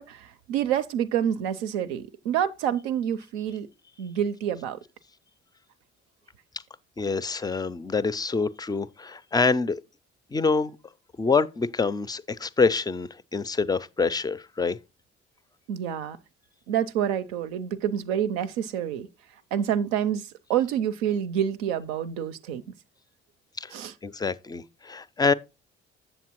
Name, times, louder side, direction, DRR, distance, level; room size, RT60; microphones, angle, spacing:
voice 1, 0.0-3.7 4.0-4.8 15.7-16.2 16.7-19.1 19.5-22.6 23.7-23.9, right 9 dB, 70° right, 0.5 m, -28 dB
voice 2, 7.0-9.8 10.3-10.8 11.2-14.8 23.6-23.7 24.0-25.3, left 4 dB, 10° left, 0.4 m, -26 dB
7.8 x 7.2 x 2.9 m
figure-of-eight pair, 45°, 33 cm